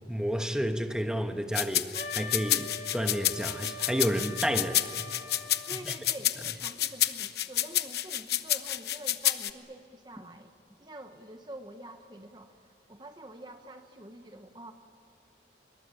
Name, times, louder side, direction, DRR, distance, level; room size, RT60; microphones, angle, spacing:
voice 1, 0.1-5.1 5.8-5.9, equal, 5° right, 1.3 m, -31 dB
sound 1, 1.5-9.5, left 13 dB, 65° left, 1.0 m, -29 dB
Wind instrument woodwind instrument, 1.9-5.8, left 2 dB, 40° left, 1.5 m, -43 dB
voice 2, 5.6-10.5 10.8-14.7, right 1 dB, 25° right, 1.1 m, -47 dB
25.5 x 22.5 x 9.0 m
head